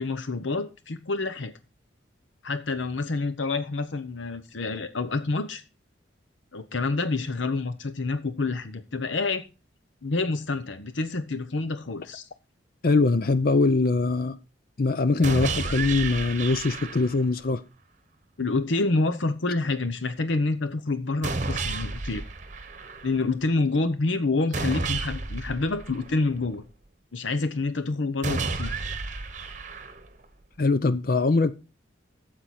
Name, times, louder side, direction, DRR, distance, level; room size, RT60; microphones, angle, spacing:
voice 1, 0.0-1.5 2.4-5.6 6.5-9.4 10.0-12.3 18.4-22.2 23.0-26.6 27.1-28.7, left 3 dB, 75° left, 0.9 m, -27 dB
voice 2, 12.8-14.4 14.8-17.6 30.6-31.5, left 3 dB, 50° left, 0.5 m, -22 dB
sound 1, 15.2-17.3 21.2-23.2 24.5-26.5 28.2-30.2, right 3 dB, 40° right, 1.1 m, -32 dB
12.5 x 7.7 x 4.3 m
head